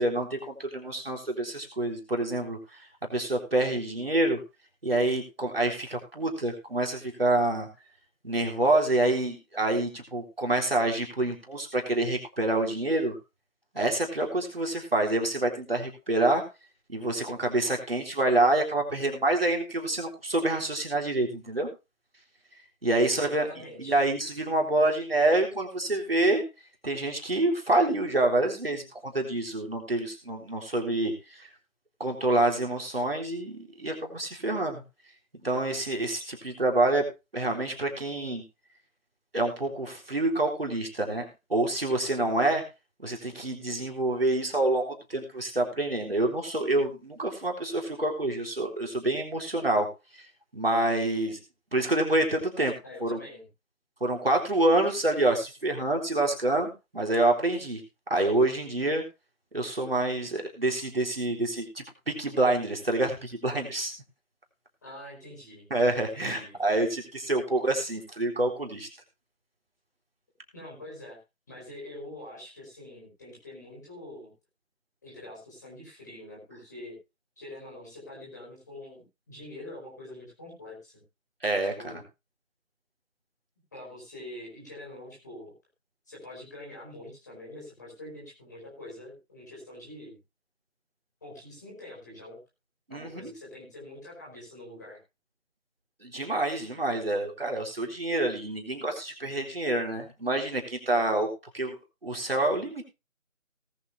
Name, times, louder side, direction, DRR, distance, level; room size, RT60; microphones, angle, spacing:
voice 1, 0.0-4.4 4.8-7.7 8.2-13.2 13.7-16.4 16.9-21.7 22.8-23.5 23.8-26.4 26.8-31.5 32.0-34.8 35.3-37.1 37.3-38.4 39.3-42.6 43.0-49.9 50.1-51.4 51.7-52.7 53.0-53.2 54.0-57.8 58.1-59.0 59.5-63.9 65.7-68.9 81.4-82.0 92.9-93.3 96.0-101.3 101.5-101.8 102.0-102.8, right 2 dB, 45° right, 2 dB, 3.7 m, -27 dB
voice 2, 23.2-24.0 52.8-53.5 64.8-65.7 66.1-66.6 70.5-71.2 71.5-74.3 75.0-77.0 77.4-81.0 81.6-82.0 83.7-85.5 86.1-90.2 91.2-92.4 92.9-95.0, left 1 dB, 15° left, -4 dB, 4.4 m, -45 dB
19.0 x 8.3 x 3.3 m, 0.27 s
figure-of-eight pair, 170°, 41 cm